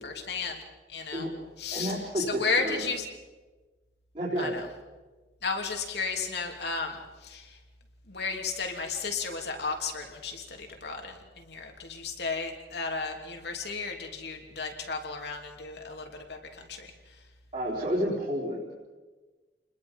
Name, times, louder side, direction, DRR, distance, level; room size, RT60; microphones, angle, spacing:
voice 1, 0.0-0.6 0.9-1.3 1.6-3.1 4.4-4.7 5.4-7.6 8.1-17.2, left 4 dB, 65° left, 3 dB, 2.9 m, -34 dB
voice 2, 1.7-2.8 4.1-4.5 17.5-18.7, equal, 40° right, -7 dB, 4.4 m, -30 dB
28.5 x 21.0 x 5.5 m, 1.3 s
head